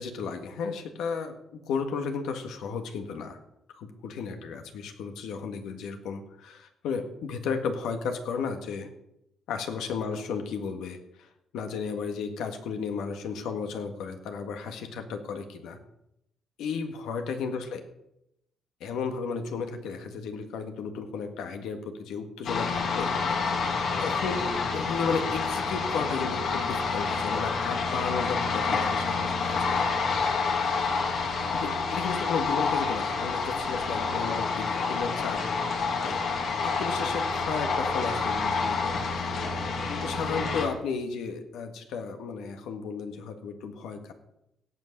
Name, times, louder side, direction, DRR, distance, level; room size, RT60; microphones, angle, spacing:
voice 1, 0.0-3.4 3.8-8.9 9.5-15.8 16.6-17.8 18.8-23.6 24.0-30.4 31.5-35.4 36.0-36.2 36.6-39.3 40.0-44.1, left 5 dB, 85° left, 6 dB, 1.7 m, -34 dB
sound 1, 22.5-40.7, left 4 dB, 65° left, 2.7 m, -28 dB
17.0 x 6.1 x 6.6 m, 0.82 s
cardioid pair, 90°, 0 cm